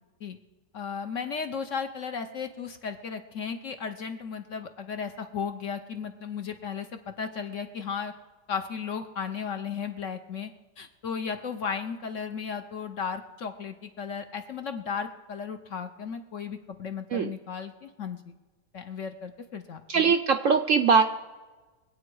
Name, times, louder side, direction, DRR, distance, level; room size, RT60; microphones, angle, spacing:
voice 1, 0.7-8.1 8.5-10.5 10.8-18.3 18.7-20.1, left 6 dB, 60° left, 7 dB, 0.9 m, -35 dB
voice 2, 19.9-21.0, right 5 dB, 70° right, 7 dB, 0.7 m, -21 dB
23.5 x 8.6 x 4.7 m, 1.3 s
omnidirectional pair, 1.8 m